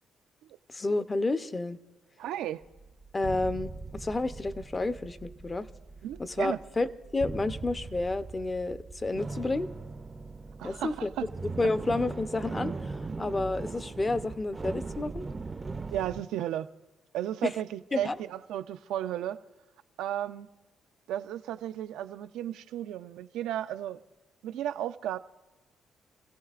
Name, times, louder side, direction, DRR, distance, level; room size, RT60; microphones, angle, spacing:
voice 1, 0.7-1.8 3.1-5.7 6.2-9.7 10.6-11.1 11.6-15.2 17.4-17.5 17.9-18.2, left 2 dB, 25° left, 0.7 m, -30 dB
voice 2, 2.2-2.6 6.0-6.6 10.6-11.3 15.9-16.7 17.1-19.4 20.0-20.5 21.1-24.0 24.4-25.2, right 11 dB, 90° right, 0.5 m, -34 dB
sound 1, 2.6-16.2, right 3 dB, 25° right, 0.5 m, -40 dB
29.0 x 16.0 x 2.4 m
cardioid pair, 90°, 0 cm